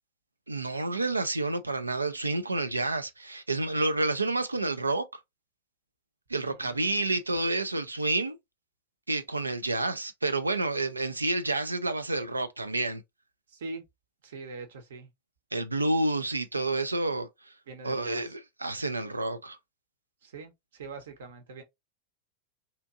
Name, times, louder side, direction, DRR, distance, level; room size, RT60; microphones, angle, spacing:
voice 1, 0.5-5.1 6.3-8.4 9.1-13.0 15.5-17.5 17.8-19.6, right 2 dB, 80° right, 0.3 m, -29 dB
voice 2, 6.5-7.0 13.5-13.8 14.2-15.1 17.7-18.3 20.2-21.6, right 3 dB, 60° right, 0.8 m, -43 dB
2.7 x 2.5 x 2.3 m
figure-of-eight pair, 90°, 0 cm